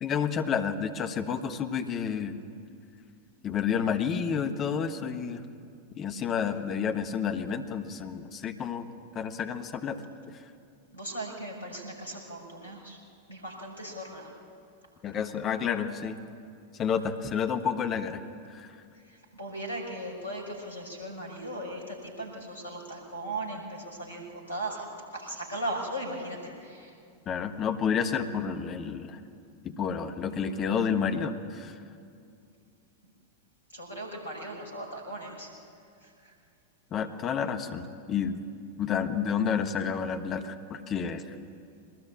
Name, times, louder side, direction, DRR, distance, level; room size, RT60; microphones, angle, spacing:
voice 1, 0.0-2.4 3.4-5.4 6.0-8.8 9.1-10.0 15.0-16.2 16.8-18.2 18.5-18.7 27.3-29.2 29.6-31.8 36.9-38.4 38.8-41.2, left 7 dB, 30° left, 8 dB, 1.4 m, -30 dB
voice 2, 10.9-13.0 13.3-14.3 19.0-24.9 25.1-26.9 33.7-35.5 36.0-36.3, right 1 dB, 75° left, 1 dB, 6.0 m, -38 dB
22.5 x 19.5 x 8.7 m, 2.4 s
figure-of-eight pair, 90°, 0 cm